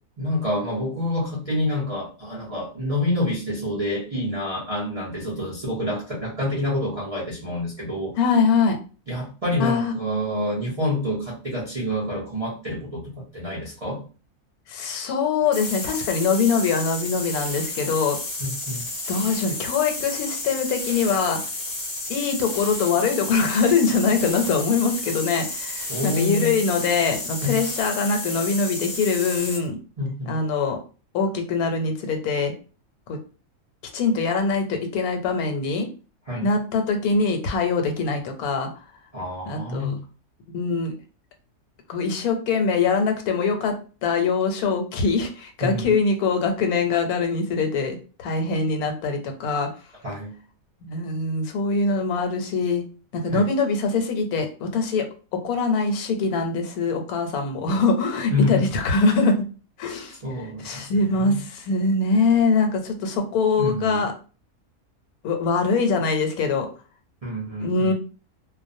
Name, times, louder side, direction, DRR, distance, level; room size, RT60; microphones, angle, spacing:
voice 1, 0.2-8.2 9.1-14.0 18.4-18.8 25.9-26.5 27.4-27.6 30.0-30.3 36.3-36.5 39.1-40.0 45.6-45.9 50.0-50.4 53.3-53.5 58.3-58.7 60.2-61.4 63.6-64.1 67.2-67.9, left 1 dB, 60° right, -7 dB, 0.3 m, -27 dB
voice 2, 8.2-8.8 9.6-10.0 14.7-18.2 19.1-21.4 22.1-29.8 30.3-30.8 31.1-32.5 33.1-33.2 33.9-35.9 36.4-38.7 39.5-40.0 40.5-40.9 41.9-43.7 44.0-49.7 50.8-52.8 53.1-55.1 55.3-59.4 59.8-60.2 60.6-64.1 65.2-66.7 67.6-67.9, left 4 dB, 85° left, 5 dB, 1.1 m, -23 dB
sound 1, 15.5-29.7, left 2 dB, 45° left, 0.5 m, -32 dB
2.3 x 2.1 x 2.5 m, 0.35 s
omnidirectional pair, 1.5 m